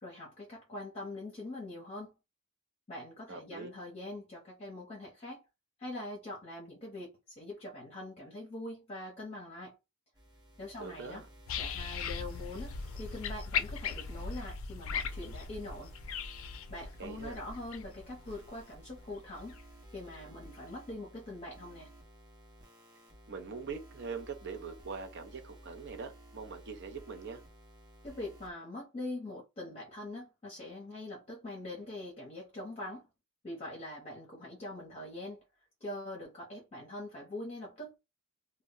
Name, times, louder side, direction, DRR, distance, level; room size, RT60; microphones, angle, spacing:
voice 1, 0.0-2.1 2.9-5.4 5.8-9.8 10.6-11.2 11.6-15.9 16.7-19.6 19.9-21.9 28.0-33.1 33.4-35.4 35.8-37.9, left 1 dB, 30° left, 0.8 m, -43 dB
voice 2, 3.3-3.7 10.8-11.3 17.0-17.4 23.3-27.4, right 5 dB, 55° right, 0.6 m, -42 dB
sound 1, 10.1-14.4 15.0-28.5, right 1 dB, 20° right, 0.7 m, -55 dB
sound 2, 11.5-19.6 20.1-20.2, left 6 dB, 70° left, 0.4 m, -39 dB
2.2 x 2.2 x 3.6 m
head